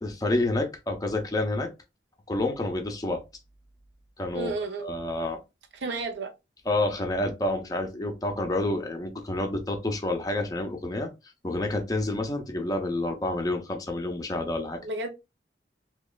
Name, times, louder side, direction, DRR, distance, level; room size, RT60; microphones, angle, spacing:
voice 1, 0.0-1.7 2.3-3.2 4.2-4.5 4.8-5.4 6.7-11.1 11.4-14.8, left 2 dB, 20° left, 0.5 m, -28 dB
voice 2, 4.3-4.9 5.8-6.3 14.8-15.1, right 3 dB, 75° right, 0.5 m, -31 dB
2.9 x 2.2 x 2.3 m
head